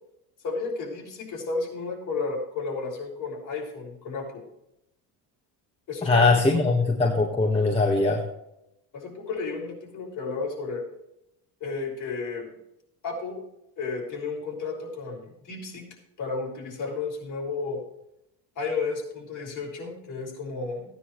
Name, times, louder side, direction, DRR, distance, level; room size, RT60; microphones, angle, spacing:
voice 1, 0.4-4.5 5.9-6.6 8.9-10.8 11.6-12.5 13.0-13.4 13.8-15.8 16.2-17.8 18.6-20.9, left 4 dB, 50° left, -1 dB, 5.5 m, -32 dB
voice 2, 6.0-8.2, left 3 dB, 15° left, -1 dB, 1.7 m, -21 dB
16.5 x 9.9 x 3.3 m, 0.83 s
cardioid pair, 120°, 40 cm